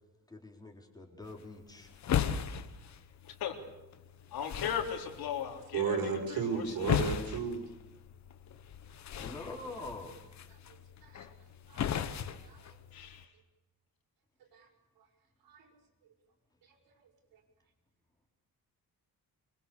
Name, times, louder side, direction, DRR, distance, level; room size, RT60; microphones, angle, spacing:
voice 1, 0.3-1.9 9.2-10.2, left 2 dB, 10° left, 2 dB, 3.8 m, -45 dB
sound 1, 1.2-13.2, left 8 dB, 50° left, 1.3 m, -38 dB
voice 2, 3.2-3.6 4.3-7.1 12.9-13.3, left 8 dB, 90° left, 4 dB, 3.8 m, -38 dB
voice 3, 5.7-7.6 11.0-11.2 11.7-11.8 12.4-12.7 14.5-14.7 15.4-15.7 16.7-16.8, right 6 dB, 80° right, 2 dB, 6.4 m, -34 dB
25.0 x 22.5 x 7.0 m, 0.99 s
cardioid pair, 170°, 36 cm